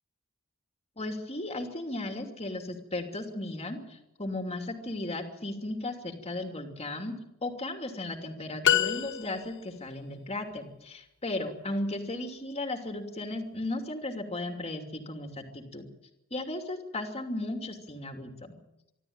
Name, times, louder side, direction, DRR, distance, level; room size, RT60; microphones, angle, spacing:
voice 1, 1.0-7.1 7.4-15.9 16.3-18.5, left 2 dB, 30° left, 5 dB, 2.9 m, -35 dB
sound 1, 8.6-9.8, left 10 dB, 55° left, 1.0 m, -26 dB
25.0 x 13.0 x 8.9 m, 0.86 s
head